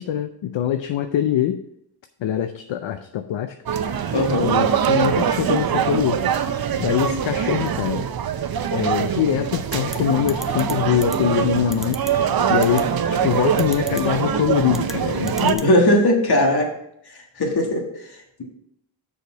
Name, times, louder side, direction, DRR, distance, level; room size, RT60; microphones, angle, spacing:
voice 1, 0.0-1.6 2.2-3.5 4.4-6.2 6.8-8.1 8.7-12.0 12.5-15.7, left 10 dB, 75° left, 8 dB, 0.6 m, -23 dB
sound 1, 3.7-15.5, right 8 dB, 50° right, 0.6 m, -23 dB
voice 2, 4.1-4.5 15.6-16.7 17.1-18.4, left 1 dB, 55° left, 2 dB, 1.7 m, -19 dB
sound 2, 9.7-10.0 10.3-10.7 11.0-11.2 11.7-12.1 12.6-12.8 13.6-14.0 14.7-14.9 15.3-15.7, equal, ahead, 0.6 m, -33 dB
6.6 x 5.1 x 5.5 m, 0.77 s
wide cardioid pair, 95°, 46 cm